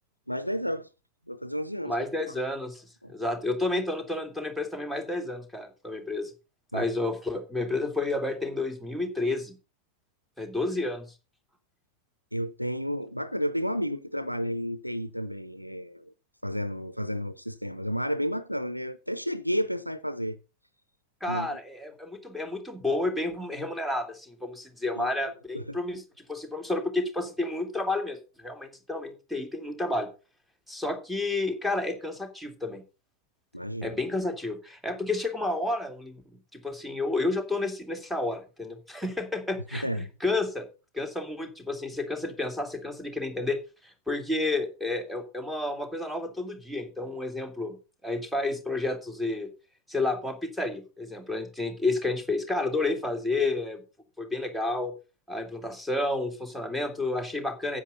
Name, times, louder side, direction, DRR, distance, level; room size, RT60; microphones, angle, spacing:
voice 1, 0.3-0.9 1.3-1.9 3.0-3.1 6.7-6.9 12.3-16.1 16.4-20.4 21.3-21.6 25.0-25.1 25.5-25.8 33.5-34.0 39.7-40.1, equal, 90° left, 0.6 m, -31 dB
voice 2, 1.8-6.3 6.7-9.6 10.4-11.1 21.2-26.0 26.3-30.1 30.7-32.8 33.8-36.2 36.5-40.7 40.9-47.8 48.0-49.5 49.9-53.8 54.2-54.9 55.3-57.8, left 2 dB, 5° right, 2.5 m, -30 dB
10.0 x 8.5 x 5.4 m
figure-of-eight pair, 90°, 0 cm